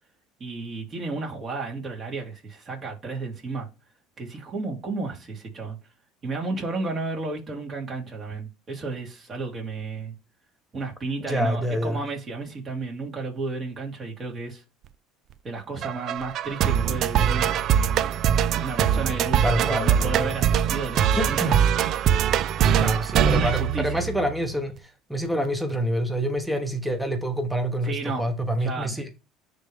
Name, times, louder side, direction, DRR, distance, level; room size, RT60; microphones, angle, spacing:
voice 1, 0.4-3.7 4.2-5.8 6.2-10.1 10.7-14.6 15.4-17.8 18.5-21.6 23.3-24.0 27.8-28.3 28.6-29.0, right 3 dB, 35° right, 2.9 m, -32 dB
voice 2, 11.2-12.0 19.4-20.3 21.2-21.6 22.8-29.1, equal, ahead, 1.1 m, -27 dB
sound 1, 15.8-24.4, right 9 dB, 55° right, 0.5 m, -22 dB
10.0 x 3.4 x 3.5 m
supercardioid pair, 100°, 0 cm